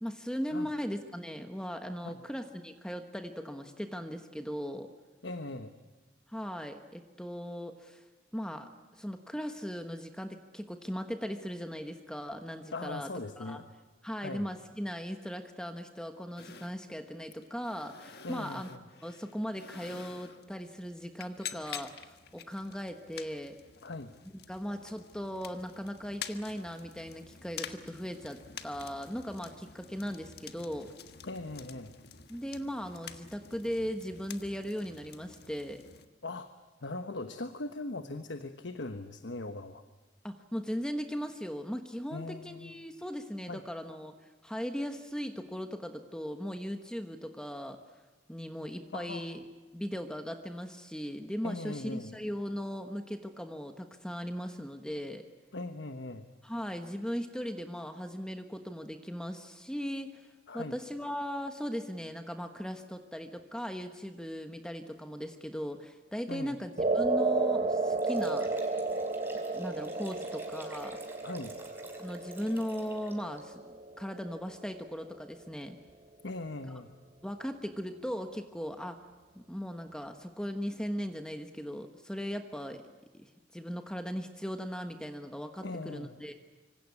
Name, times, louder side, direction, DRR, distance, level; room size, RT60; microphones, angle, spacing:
voice 1, 0.0-4.9 6.3-8.0 8.3-13.1 13.4-13.6 14.0-18.7 19.0-23.6 24.5-30.9 32.3-35.8 40.2-44.1 44.4-47.8 48.3-49.4 49.7-55.3 56.4-60.3 60.5-68.5 69.5-71.0 72.0-75.8 77.2-79.0 79.3-82.8 83.1-86.3, equal, 5° left, 6 dB, 1.2 m, -38 dB
voice 2, 5.2-5.7 12.7-13.7 14.2-14.5 18.2-18.8 23.8-24.1 31.2-31.9 36.2-36.5 36.8-39.8 42.1-42.8 43.5-43.6 48.9-49.4 51.4-52.1 55.5-56.3 60.5-60.8 66.3-66.5 71.2-71.5 76.2-76.9 85.6-86.2, left 2 dB, 75° left, 9 dB, 1.2 m, -40 dB
sound 1, 16.4-36.1, left 7 dB, 55° left, 1.5 m, -48 dB
sound 2, 66.8-75.1, right 3 dB, 35° right, 1.0 m, -33 dB
Liquid, 67.9-73.4, right 2 dB, 10° right, 4.5 m, -53 dB
25.5 x 25.0 x 8.5 m, 1.2 s
head